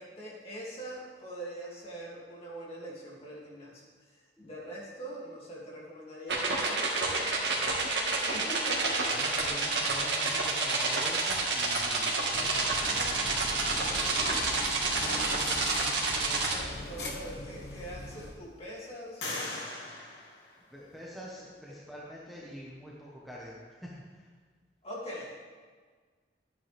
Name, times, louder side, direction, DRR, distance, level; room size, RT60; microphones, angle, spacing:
voice 1, 0.0-3.8 4.1-9.1 15.2-19.7 24.8-25.5, right 1 dB, 35° left, -5 dB, 2.5 m, -43 dB
sound 1, 6.3-16.6, right 3 dB, 85° right, 1.8 m, -29 dB
voice 2, 9.1-14.1 20.7-24.3, equal, ahead, -6 dB, 1.2 m, -45 dB
sound 2, 12.3-18.3, left 1 dB, 65° left, 1.3 m, -40 dB
sound 3, 16.9-17.0 17.6-18.3 19.2-21.1, left 2 dB, 80° left, 2.1 m, -41 dB
12.0 x 9.1 x 3.4 m, 1.5 s
head